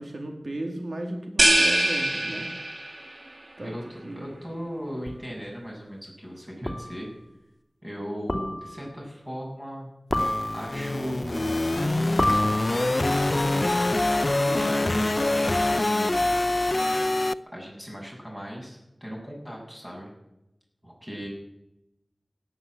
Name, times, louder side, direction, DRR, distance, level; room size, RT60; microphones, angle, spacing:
voice 1, 0.0-2.5 3.6-3.7 4.0-4.4 14.4-14.9, right 1 dB, 70° right, 2 dB, 2.4 m, -35 dB
sound 1, 1.4-3.1, right 1 dB, 45° right, 1.9 m, -22 dB
voice 2, 3.6-7.1 7.8-9.9 10.5-13.9 14.5-16.3 17.5-20.1 20.8-21.3, equal, 15° right, -2 dB, 8.0 m, -37 dB
sound 2, 5.1-5.2 6.7-7.0 8.3-8.9 10.1-10.9 12.2-13.1, left 1 dB, 15° left, 3.2 m, -28 dB
sound 3, 10.1-17.3, left 2 dB, 50° left, 0.6 m, -25 dB
17.0 x 10.0 x 7.8 m, 0.91 s
wide cardioid pair, 45°, 0 cm